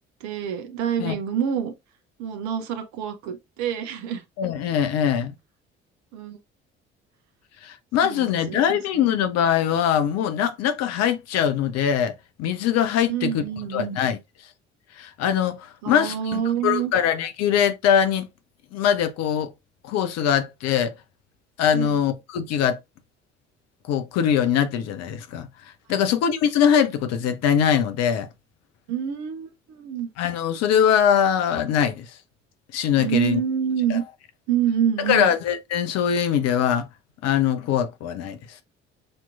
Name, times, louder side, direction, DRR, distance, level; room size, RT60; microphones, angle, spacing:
voice 1, 0.2-1.7 2.2-4.2 6.1-6.4 8.0-8.8 13.1-14.0 15.8-16.9 21.7-22.0 25.9-26.0 28.9-30.1 33.0-34.0 34.5-35.3, right 9 dB, 55° right, 0.9 m, -27 dB
voice 2, 4.4-5.3 7.6-13.4 13.7-14.2 15.0-18.3 18.7-19.5 19.8-20.9 21.6-22.8 23.9-25.5 25.9-28.3 30.2-32.1 32.7-33.4 33.9-34.0 35.0-36.9 37.2-38.6, left 8 dB, 50° left, 0.8 m, -22 dB
6.4 x 2.9 x 2.4 m
figure-of-eight pair, 50°, 33 cm